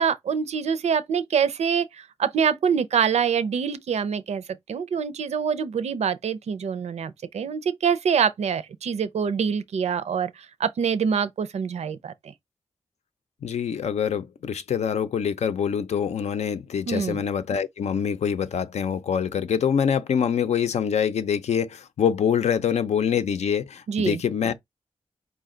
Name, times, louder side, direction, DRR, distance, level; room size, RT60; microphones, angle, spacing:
voice 1, 0.0-12.1 16.9-17.2 23.9-24.2, right 7 dB, 80° right, 0.5 m, -25 dB
voice 2, 13.4-24.5, left 7 dB, 80° left, 0.6 m, -25 dB
5.0 x 2.2 x 3.8 m
wide cardioid pair, 170°, 11 cm